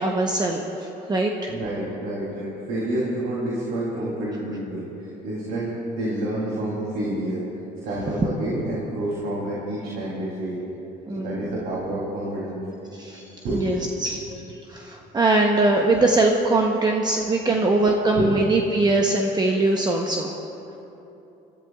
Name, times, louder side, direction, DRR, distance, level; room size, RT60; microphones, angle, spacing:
voice 1, 0.0-1.5 11.1-11.5 13.0-13.3 13.5-20.4, right 2 dB, 25° right, 1 dB, 0.9 m, -22 dB
voice 2, 1.5-7.4 7.8-10.6 11.1-12.6 13.4-13.8 18.1-18.3, right 1 dB, 80° right, -6 dB, 3.2 m, -28 dB
29.5 x 13.5 x 2.4 m, 2.9 s
cardioid pair, 110°, 17 cm